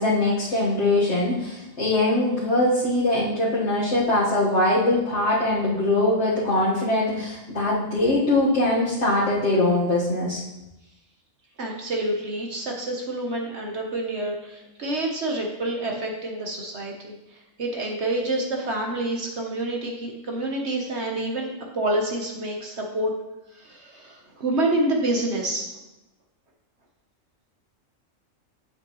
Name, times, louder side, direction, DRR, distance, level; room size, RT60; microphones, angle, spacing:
voice 1, 0.0-10.4, left 2 dB, 60° left, -9 dB, 1.9 m, -22 dB
voice 2, 11.6-23.1 23.5-25.7, right 1 dB, 55° right, 0 dB, 1.3 m, -28 dB
9.0 x 7.8 x 3.1 m, 0.94 s
omnidirectional pair, 1.4 m